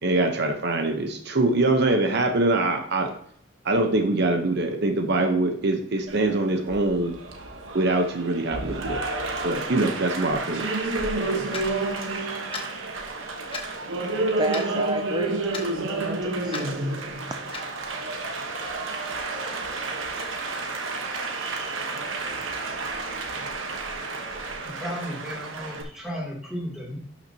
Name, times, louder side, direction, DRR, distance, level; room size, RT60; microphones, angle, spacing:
voice 1, 0.0-3.1 3.6-7.1 7.7-9.0 9.4-10.7, right 2 dB, 60° right, 5 dB, 1.0 m, -23 dB
Applause, 6.1-25.8, right 2 dB, 90° right, 1.2 m, -30 dB
Clock, 11.5-11.7 12.5-12.7 13.5-13.7 14.5-14.7 15.5-15.7 16.5-16.7 17.5-17.7, left 3 dB, 30° left, 1.2 m, -33 dB
voice 2, 14.4-15.5 15.9-16.8, right 3 dB, 20° right, 7 dB, 0.4 m, -31 dB
voice 3, 24.8-27.0, equal, ahead, -4 dB, 2.9 m, -34 dB
11.5 x 6.0 x 2.9 m, 0.64 s
head